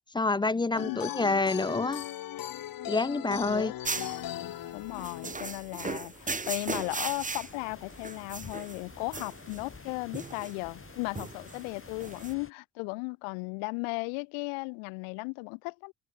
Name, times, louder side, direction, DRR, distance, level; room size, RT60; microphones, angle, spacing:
voice 1, 0.1-2.0 2.9-3.7, left 3 dB, 10° left, 0.4 m, -27 dB
voice 2, 0.7-1.4 3.4-15.9, left 38 dB, 85° left, 1.1 m, -36 dB
sound 1, 0.8-5.8, left 12 dB, 45° left, 1.1 m, -38 dB
sound 2, 3.8-12.3, right 4 dB, 15° right, 1.6 m, -38 dB
sound 3, 5.9-12.5, left 5 dB, 25° left, 3.7 m, -50 dB
open air
supercardioid pair, 90°, 48 cm